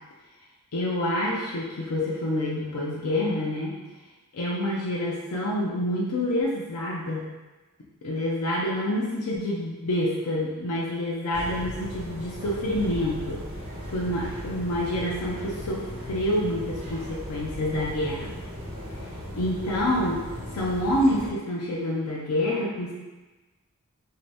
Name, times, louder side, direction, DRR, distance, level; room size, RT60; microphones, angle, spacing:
voice 1, 0.7-3.8 4.3-7.3 8.0-13.4 13.9-18.4 19.3-20.3 20.5-22.9, left 1 dB, 75° left, -4 dB, 0.5 m, -27 dB
sound 1, 11.3-21.3, equal, 25° right, 1.4 m, -37 dB
2.7 x 2.6 x 3.2 m, 1.2 s
head